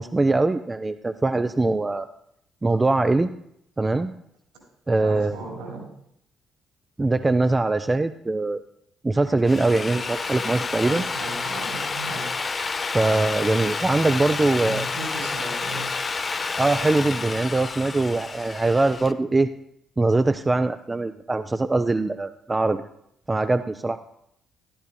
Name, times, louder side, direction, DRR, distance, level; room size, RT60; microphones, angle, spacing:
voice 1, 0.0-2.1 2.6-3.3 3.8-4.1 4.9-5.4 7.0-8.6 9.0-11.0 12.9-14.9 16.6-19.5 20.0-22.8 23.3-24.0, right 2 dB, 20° right, 10 dB, 0.4 m, -22 dB
voice 2, 5.0-5.8 10.8-12.4 14.3-15.9, right 2 dB, 75° right, -2 dB, 3.6 m, -36 dB
Drill, 9.3-19.1, left 4 dB, 35° left, 0.5 m, -29 dB
13.5 x 12.0 x 2.3 m, 0.74 s
figure-of-eight pair, 40°, 0 cm